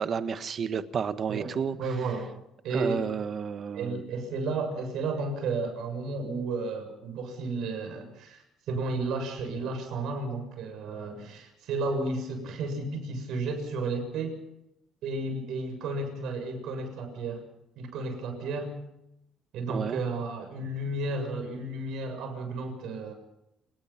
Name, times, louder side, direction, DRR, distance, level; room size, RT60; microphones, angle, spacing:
voice 1, 0.0-1.8 2.7-4.0 19.7-20.0, right 7 dB, 40° right, 11 dB, 1.3 m, -31 dB
voice 2, 1.8-2.3 2.6-3.0 3.7-14.4 15.0-17.4 17.8-18.7 19.5-23.1, right 3 dB, 70° right, 6 dB, 7.1 m, -33 dB
28.5 x 19.0 x 5.9 m, 0.82 s
cardioid pair, 130°, 0 cm